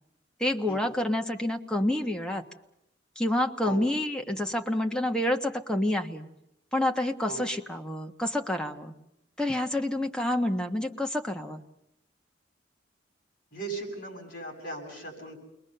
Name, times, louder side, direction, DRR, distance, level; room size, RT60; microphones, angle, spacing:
voice 1, 0.4-2.4 3.1-6.2 6.7-8.9 9.4-11.6, left 1 dB, 5° left, 3 dB, 1.4 m, -28 dB
voice 2, 13.5-15.4, right 2 dB, 50° left, 2 dB, 7.4 m, -38 dB
29.0 x 22.0 x 6.8 m, 0.84 s
head